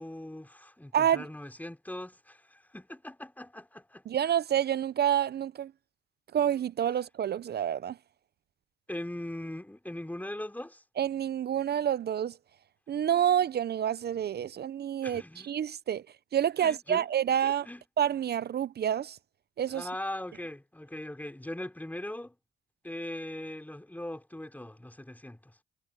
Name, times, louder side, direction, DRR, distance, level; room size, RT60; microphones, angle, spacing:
voice 1, 0.0-4.0 8.9-10.8 15.0-15.5 16.6-17.1 17.4-17.8 19.7-22.4 22.8-25.6, left 1 dB, 10° left, 4.0 m, -40 dB
voice 2, 0.9-1.2 4.1-5.7 6.3-8.0 11.0-12.4 12.9-16.0 16.3-17.7 18.0-19.2 19.6-19.9, right 10 dB, 55° right, 0.7 m, -28 dB
supercardioid pair, 55°, 20 cm